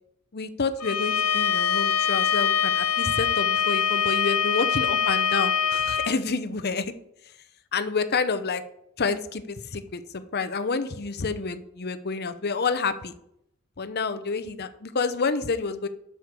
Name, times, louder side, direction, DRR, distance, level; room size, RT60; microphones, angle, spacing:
voice 1, 0.3-6.9 7.7-8.6 9.0-13.1 13.8-15.9, left 4 dB, 45° left, 11 dB, 0.7 m, -28 dB
Bowed string instrument, 0.8-6.1, left 7 dB, 85° left, 0.7 m, -24 dB
8.0 x 6.5 x 6.6 m, 0.76 s
head